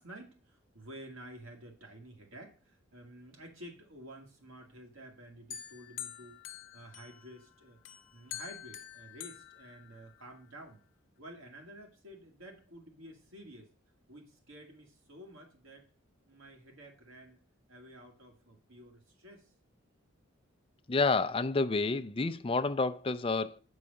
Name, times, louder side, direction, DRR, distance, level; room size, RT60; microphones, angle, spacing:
voice 1, 0.0-6.4 6.7-7.8 8.1-10.8 11.2-13.7 14.1-15.8 16.2-17.4 17.7-19.5, right 1 dB, 80° right, 2.2 m, -51 dB
sound 1, 5.5-7.4 7.9-10.4, left 10 dB, 65° left, 0.8 m, -46 dB
voice 2, 20.9-23.6, left 3 dB, 25° left, 0.5 m, -29 dB
8.8 x 4.8 x 5.4 m
head